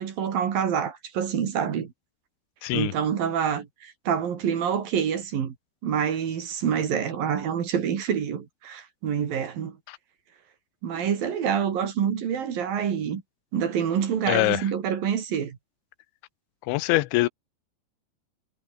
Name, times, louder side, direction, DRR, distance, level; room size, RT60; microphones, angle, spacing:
voice 1, 0.0-1.9 2.7-5.5 5.8-9.8 10.8-13.2 13.5-15.6, right 8 dB, 55° right, 3.9 m, -27 dB
voice 2, 2.6-2.9 9.9-10.0 14.3-14.6 16.7-17.3, left 19 dB, 85° left, 3.2 m, -23 dB
omnidirectional pair, 5.3 m